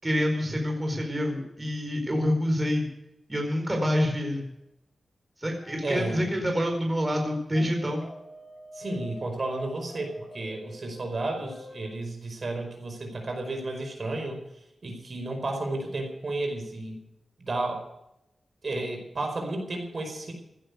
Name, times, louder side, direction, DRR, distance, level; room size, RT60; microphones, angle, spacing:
voice 1, 0.0-2.9 3.3-4.5 5.4-8.0, equal, 20° right, 2 dB, 4.4 m, -27 dB
sound 1, 5.6-6.6 7.5-11.9, left 2 dB, 45° left, 6.6 m, -46 dB
voice 2, 5.8-6.3 8.7-14.4 14.8-17.0 17.4-17.8 18.6-20.3, right 2 dB, 50° right, 4 dB, 4.9 m, -32 dB
16.5 x 10.5 x 6.8 m, 0.85 s
wide cardioid pair, 80°, 0 cm